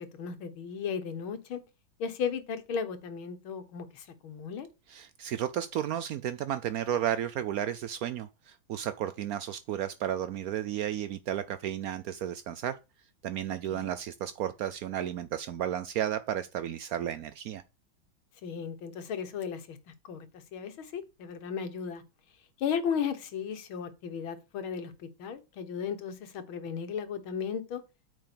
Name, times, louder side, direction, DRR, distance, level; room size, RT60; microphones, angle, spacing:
voice 1, 0.0-1.6 2.0-4.7 13.7-13.9 18.4-19.8 20.0-20.3 20.5-22.0 22.6-27.8, left 7 dB, 80° left, 2.2 m, -35 dB
voice 2, 4.9-12.7 13.2-17.6, right 10 dB, 80° right, 0.8 m, -33 dB
9.1 x 5.1 x 6.9 m
omnidirectional pair, 2.2 m